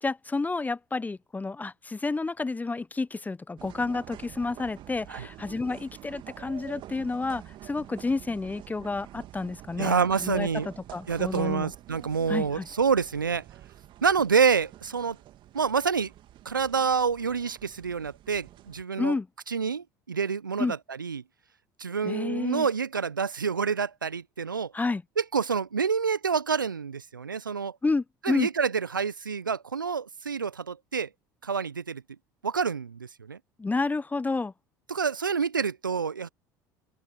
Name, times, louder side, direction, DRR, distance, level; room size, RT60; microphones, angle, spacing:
voice 1, 0.0-11.7 12.3-12.7 19.0-19.3 20.6-20.7 22.0-22.7 24.7-25.0 27.8-28.5 33.6-34.5, left 3 dB, 15° left, 1.0 m, -30 dB
sound 1, 3.6-18.8, right 13 dB, 50° right, 2.5 m, -47 dB
voice 2, 9.8-10.7 11.1-13.4 14.0-15.2 15.5-16.1 16.4-19.2 19.5-21.2 21.8-24.7 25.2-27.8 28.2-31.1 31.4-32.0 32.4-33.4 34.9-36.3, right 6 dB, 85° right, 1.1 m, -27 dB
open air
figure-of-eight pair, 65°, 11 cm